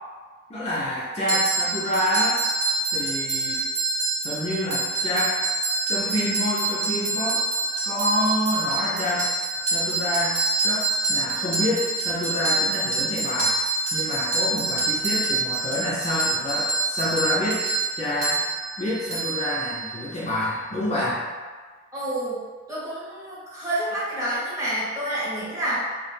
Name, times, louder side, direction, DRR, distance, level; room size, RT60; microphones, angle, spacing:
voice 1, 0.5-2.4 2.9-3.7 4.2-5.3 5.9-7.4 7.8-9.3 9.6-13.5 13.9-17.6 18.0-18.4 18.8-21.2, left 1 dB, 35° left, -8 dB, 0.5 m, -27 dB
sound 1, 1.3-20.1, right 2 dB, 40° right, 0.6 m, -26 dB
voice 2, 21.9-22.4 22.7-25.8, right 1 dB, 15° right, -10 dB, 0.9 m, -28 dB
2.3 x 2.0 x 3.2 m, 1.5 s
head